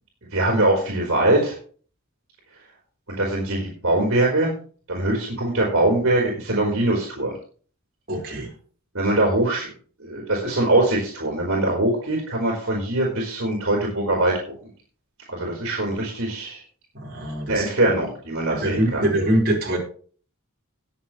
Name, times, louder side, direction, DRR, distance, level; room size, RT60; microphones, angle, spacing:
voice 1, 0.3-1.6 3.1-4.5 4.9-7.3 8.9-9.7 10.0-14.5 15.3-16.6 17.5-19.0, right 1 dB, 70° right, -2 dB, 4.3 m, -22 dB
voice 2, 8.1-8.5 16.9-17.7 18.6-19.8, right 1 dB, 50° right, -2 dB, 5.0 m, -23 dB
20.0 x 7.5 x 3.3 m, 0.43 s
head